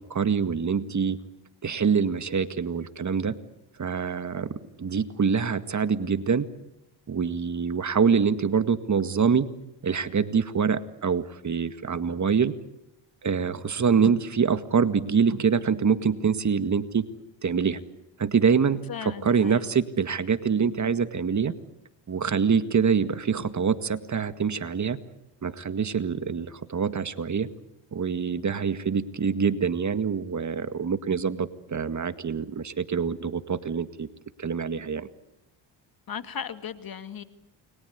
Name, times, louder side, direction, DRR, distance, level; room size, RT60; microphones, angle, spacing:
voice 1, 0.1-1.2 1.6-3.4 3.8-6.5 7.1-9.5 9.8-12.5 13.2-17.1 17.4-17.8 18.2-21.5 22.1-25.0 25.4-27.5 27.9-34.1 34.4-35.1, right 6 dB, 40° right, 11 dB, 1.9 m, -25 dB
voice 2, 18.9-19.6 36.1-37.2, left 7 dB, 50° left, 10 dB, 2.3 m, -36 dB
29.5 x 23.0 x 8.2 m, 0.87 s
supercardioid pair, 75°, 47 cm